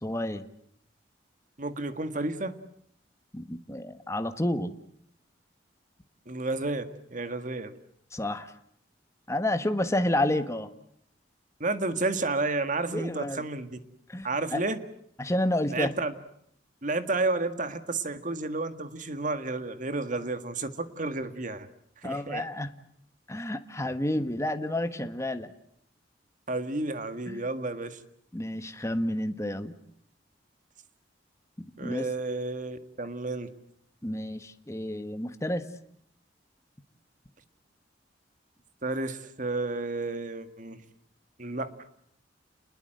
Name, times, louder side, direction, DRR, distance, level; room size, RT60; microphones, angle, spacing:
voice 1, 0.0-0.4 3.3-4.7 8.1-8.5 9.3-10.7 12.9-13.4 14.1-14.6 15.2-15.9 22.0-22.7 23.3-25.5 27.3-27.4 28.3-29.8 31.6-32.1 34.0-35.7, left 1 dB, 15° left, 9 dB, 1.4 m, -30 dB
voice 2, 1.6-2.6 6.2-6.8 7.1-7.7 11.6-13.7 14.2-14.8 15.7-16.1 16.8-21.7 22.0-22.4 26.5-28.0 31.8-33.5 38.8-40.8 41.4-41.7, right 2 dB, 45° right, 10 dB, 1.8 m, -31 dB
29.5 x 21.0 x 7.8 m, 0.71 s
head